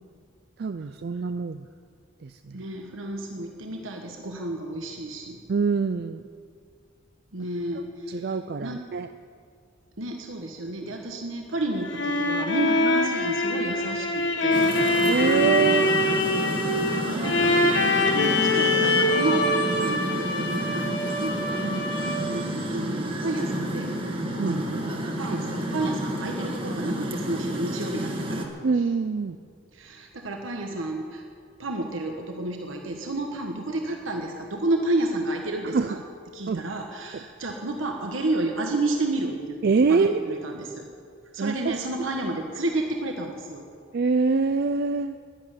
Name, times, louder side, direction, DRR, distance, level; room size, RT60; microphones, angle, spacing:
voice 1, 0.6-1.7 2.2-2.6 5.5-6.2 8.1-9.1 15.1-15.9 19.8-20.0 21.6-21.9 24.4-24.6 28.6-29.4 35.7-36.0 36.5-36.6 39.6-40.4 41.4-41.9 43.9-45.2, right 4 dB, 50° right, 10 dB, 0.4 m, -25 dB
voice 2, 2.5-5.4 7.3-8.8 10.0-14.7 17.0-19.5 19.8-23.9 24.4-28.5 28.7-28.8 29.7-31.2 31.6-36.0 36.3-40.9 41.3-43.6, right 2 dB, 80° right, 2 dB, 1.3 m, -31 dB
sound 1, 11.6-22.4, left 2 dB, 60° left, 1.4 m, -24 dB
The sound of Union Square (New York City), 14.5-28.5, right 1 dB, 25° right, 1.5 m, -30 dB
11.5 x 11.0 x 9.8 m, 2.2 s
head